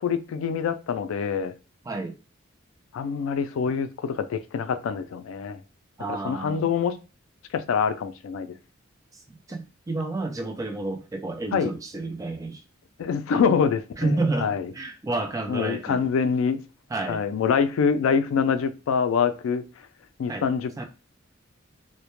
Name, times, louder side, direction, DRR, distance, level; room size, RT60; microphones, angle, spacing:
voice 1, 0.0-1.5 2.9-5.6 6.1-7.0 7.5-8.6 11.5-11.7 13.0-14.7 15.5-16.6 17.1-19.6 20.2-20.9, left 6 dB, 90° left, 0.3 m, -25 dB
voice 2, 1.9-2.2 6.0-6.7 9.1-12.6 14.0-16.1 16.9-17.3 20.3-20.5 20.8-20.9, right 2 dB, 15° right, 0.3 m, -30 dB
2.1 x 2.1 x 2.9 m
head